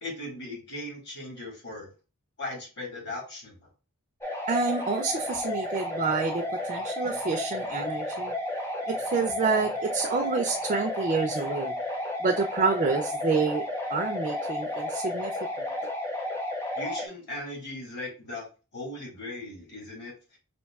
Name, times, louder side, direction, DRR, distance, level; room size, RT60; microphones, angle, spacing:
voice 1, 0.0-1.9 2.4-3.6 16.7-18.4 18.7-20.4, left 2 dB, 50° left, 1.6 m, -38 dB
sound 1, 4.2-17.1, left 1 dB, 10° left, 0.5 m, -32 dB
voice 2, 4.5-8.3 8.9-11.7 12.2-13.6 13.9-15.7, right 4 dB, 35° right, 0.3 m, -28 dB
5.3 x 2.6 x 2.3 m
head